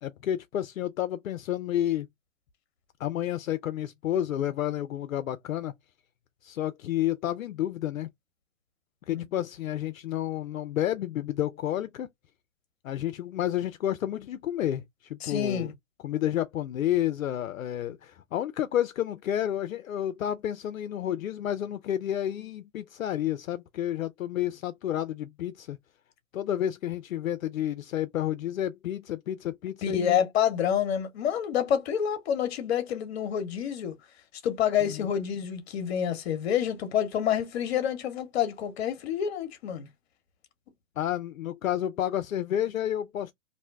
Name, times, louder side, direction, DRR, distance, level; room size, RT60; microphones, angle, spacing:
voice 1, 0.0-2.1 3.0-5.7 6.4-8.1 9.1-12.1 12.8-15.7 16.0-25.8 26.3-30.2 34.8-35.2 41.0-43.3, left 11 dB, 80° left, 0.6 m, -30 dB
voice 2, 15.2-15.7 29.8-33.9 34.4-39.9, left 9 dB, 50° left, 1.0 m, -28 dB
2.7 x 2.1 x 3.5 m
hypercardioid pair, 130°, 40 cm